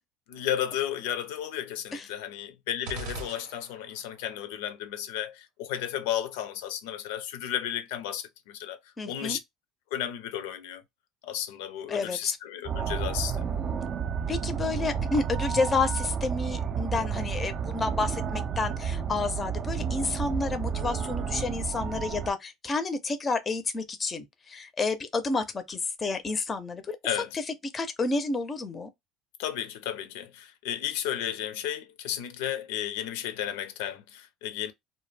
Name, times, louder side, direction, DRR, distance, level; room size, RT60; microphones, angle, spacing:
voice 1, 0.3-8.8 9.1-9.4 9.9-10.8 11.2-13.5 27.0-27.4 29.4-34.7, left 11 dB, 90° left, 0.5 m, -33 dB
sound 1, 2.8-4.1, right 3 dB, 85° right, 0.8 m, -40 dB
voice 2, 9.0-9.4 11.9-12.4 14.3-27.0 27.3-28.9, left 3 dB, 25° left, 0.5 m, -30 dB
sound 2, 12.7-22.3, right 6 dB, 35° right, 0.4 m, -31 dB
2.2 x 2.0 x 3.2 m
cardioid pair, 125°, 0 cm